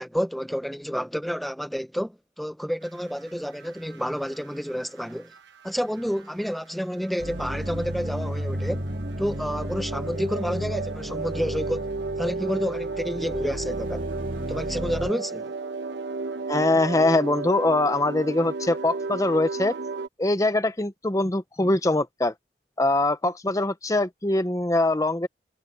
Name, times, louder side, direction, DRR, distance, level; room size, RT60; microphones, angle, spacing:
voice 1, 0.0-5.3 5.6-8.9 9.2-11.9 12.2-14.1 14.5-15.5 21.6-21.7, equal, ahead, 1.0 m, -29 dB
sound 1, 2.8-20.1, right 3 dB, 80° right, 1.0 m, -34 dB
sound 2, 7.2-15.1, equal, 50° right, 2.6 m, -33 dB
voice 2, 16.5-19.7 20.2-22.3 22.8-25.3, left 2 dB, 20° left, 0.7 m, -23 dB
head